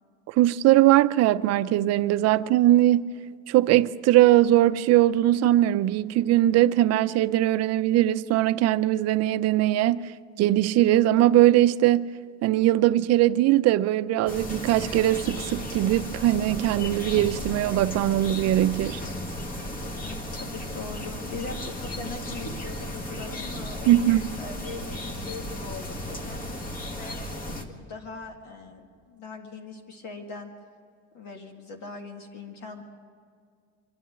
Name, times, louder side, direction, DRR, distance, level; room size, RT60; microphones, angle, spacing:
voice 1, 0.3-3.1 3.5-12.1 12.4-19.0 23.9-24.3, right 14 dB, 50° right, 0.6 m, -21 dB
sound 1, 14.3-27.6, left 1 dB, 25° left, 1.7 m, -35 dB
voice 2, 20.0-24.8 25.1-26.5 26.9-30.5 31.1-32.8, left 4 dB, 55° left, 2.1 m, -41 dB
25.0 x 11.0 x 9.5 m
cardioid pair, 145°, 33 cm